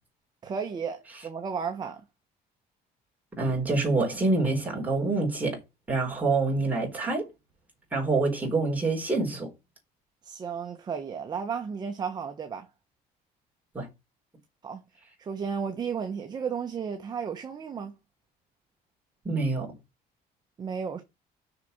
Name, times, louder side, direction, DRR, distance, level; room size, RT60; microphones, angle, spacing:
voice 1, 0.4-2.0 10.2-12.7 14.6-14.8 15.2-17.9 20.6-21.0, right 6 dB, 25° right, 1.1 m, -33 dB
voice 2, 3.4-5.6 5.9-7.3 7.9-9.5 13.7-13.9 19.2-19.7, right 3 dB, 10° right, 3.9 m, -26 dB
6.8 x 5.9 x 6.6 m
cardioid pair, 175°, 16 cm